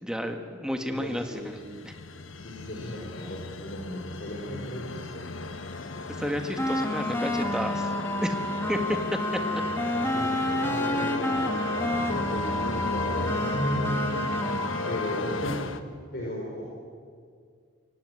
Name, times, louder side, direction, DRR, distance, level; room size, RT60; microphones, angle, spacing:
voice 1, 0.0-1.9 6.2-7.9 8.2-8.4 8.7-9.6, equal, 5° right, 5 dB, 1.7 m, -31 dB
voice 2, 0.9-1.6 2.4-5.3 9.9-11.3 11.7-14.3 14.9-15.6 16.1-16.6, equal, 50° left, -2 dB, 4.5 m, -35 dB
sound 1, 1.1-15.8, left 3 dB, 80° left, 1.2 m, -35 dB
sound 2, 6.6-15.4, left 1 dB, 10° left, 1.8 m, -30 dB
24.0 x 17.5 x 9.7 m, 2.1 s
head